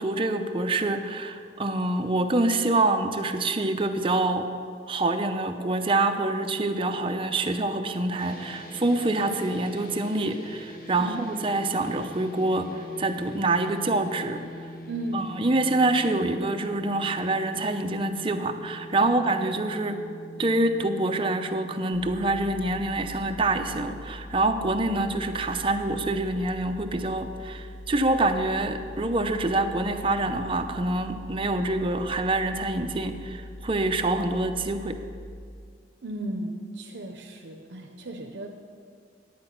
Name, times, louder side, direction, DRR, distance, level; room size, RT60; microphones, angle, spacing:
voice 1, 0.0-4.5 4.9-14.4 15.1-20.0 20.4-35.0, right 2 dB, 30° right, 5 dB, 0.7 m, -26 dB
sound 1, 8.2-24.5, equal, 55° left, 0.9 m, -44 dB
voice 2, 14.9-15.3 19.0-19.2 36.0-38.5, right 1 dB, 70° right, 2 dB, 0.8 m, -35 dB
sound 2, 21.9-35.4, left 1 dB, 35° left, 1.2 m, -42 dB
10.5 x 8.8 x 5.9 m, 2.2 s
head